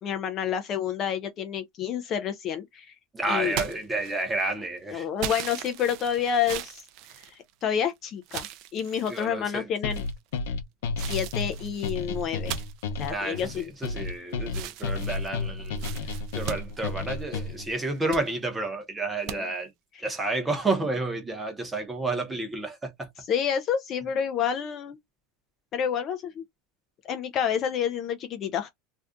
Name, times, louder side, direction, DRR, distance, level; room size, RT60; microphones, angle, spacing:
voice 1, 0.0-2.9 3.3-3.6 4.9-6.8 7.2-10.0 11.0-12.5 13.0-13.6 19.3-19.4 23.3-25.0 25.7-26.4 27.0-28.7, left 8 dB, 25° left, 0.4 m, -29 dB
voice 2, 3.1-5.1 9.1-9.7 13.1-19.7 20.0-23.1, right 2 dB, 10° right, 0.8 m, -30 dB
sound 1, 3.5-4.5 5.2-7.8 8.3-9.3 9.9-10.4 11.0-14.1 14.5-17.5 17.9-18.3 19.3-19.4, right 11 dB, 40° right, 0.4 m, -38 dB
sound 2, 9.8-17.7, left 3 dB, 80° left, 0.7 m, -32 dB
2.5 x 2.3 x 3.5 m
supercardioid pair, 170°, 0 cm